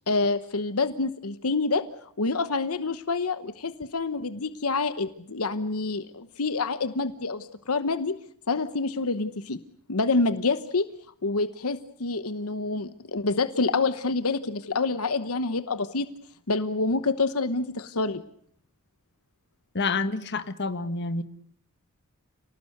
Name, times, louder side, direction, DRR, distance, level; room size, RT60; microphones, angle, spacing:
voice 1, 0.0-8.2 8.5-9.6 9.9-10.9 11.2-16.1 16.5-18.2, left 3 dB, 80° left, 1.1 m, -27 dB
voice 2, 19.7-21.2, left 3 dB, 50° left, 1.5 m, -28 dB
29.5 x 19.0 x 8.0 m
head